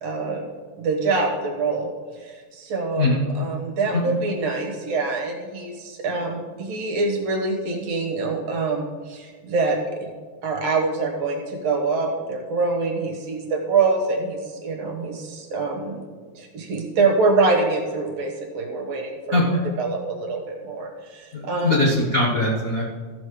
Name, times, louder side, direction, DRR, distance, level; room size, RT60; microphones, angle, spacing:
voice 1, 0.0-0.4 0.8-1.9 2.2-3.1 3.4-10.1 10.4-16.0 16.3-19.4 19.8-21.7, right 3 dB, 60° right, 1 dB, 2.3 m, -25 dB
voice 2, 21.3-22.8, left 2 dB, 50° left, -4 dB, 1.0 m, -21 dB
14.5 x 6.3 x 5.0 m, 1.5 s
omnidirectional pair, 3.6 m